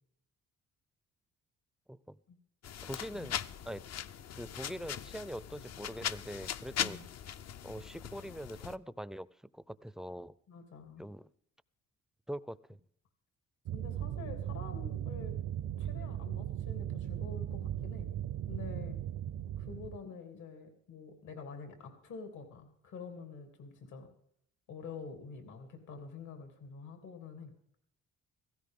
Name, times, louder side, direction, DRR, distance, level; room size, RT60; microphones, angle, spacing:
voice 1, 1.9-2.2 2.8-3.4 3.7-3.8 4.3-7.0 7.6-10.4 11.0-11.3 12.3-12.8, equal, ahead, 18 dB, 0.4 m, -43 dB
sound 1, 2.6-8.8, left 9 dB, 60° left, 0.7 m, -40 dB
voice 2, 6.7-7.1 10.5-11.0 13.7-15.3 15.8-18.1 18.5-19.0 19.6-24.1 24.7-27.5, left 5 dB, 80° left, 6 dB, 2.9 m, -47 dB
sound 2, 13.7-20.0, right 11 dB, 75° right, 0.7 m, -37 dB
17.0 x 16.0 x 3.7 m, 0.69 s
cardioid pair, 90°, 30 cm